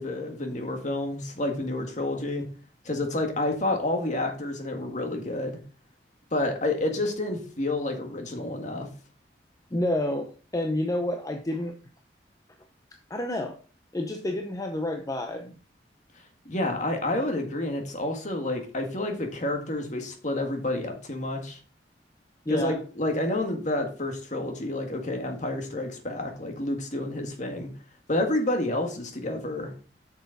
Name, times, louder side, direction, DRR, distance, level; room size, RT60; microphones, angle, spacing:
voice 1, 0.0-2.4 2.9-5.6 6.3-8.9 16.5-21.6 22.5-27.7 28.1-29.7, left 1 dB, 45° left, 4 dB, 1.9 m, -29 dB
voice 2, 9.7-11.7 13.1-13.6 13.9-15.6 22.5-22.8, left 1 dB, 20° left, 5 dB, 0.7 m, -29 dB
8.1 x 6.4 x 4.1 m, 0.38 s
head